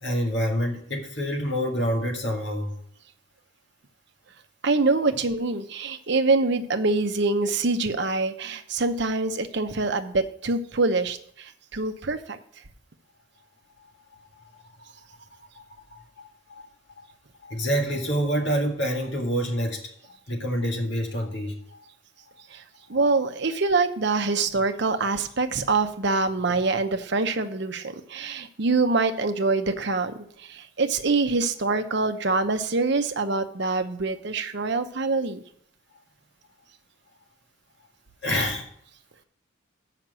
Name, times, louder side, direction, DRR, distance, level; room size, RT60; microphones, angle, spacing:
voice 1, 0.0-2.7 14.3-14.6 15.6-15.7 15.9-16.7 17.0-17.1 17.4-21.9 38.2-38.7, equal, 55° left, 1 dB, 1.9 m, -27 dB
voice 2, 4.6-12.4 22.5-22.6 22.9-35.4, right 3 dB, 55° right, 8 dB, 0.8 m, -25 dB
7.6 x 5.9 x 7.5 m, 0.66 s
head